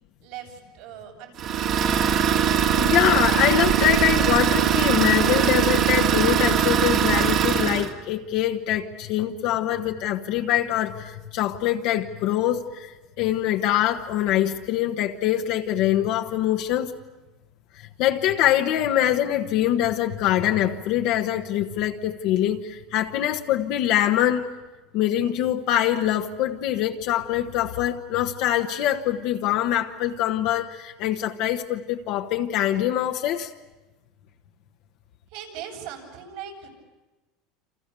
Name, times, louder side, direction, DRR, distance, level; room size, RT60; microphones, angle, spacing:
voice 1, 0.2-1.9 35.3-36.7, right 9 dB, 70° right, 1 dB, 7.3 m, -40 dB
Idling, 1.4-7.9, right 9 dB, 45° right, 2.2 m, -21 dB
voice 2, 2.8-12.9 13.2-16.9 18.0-24.5 24.9-33.5, left 12 dB, 55° left, 3 dB, 1.2 m, -24 dB
28.5 x 27.0 x 6.9 m, 1.1 s
supercardioid pair, 150°, 0 cm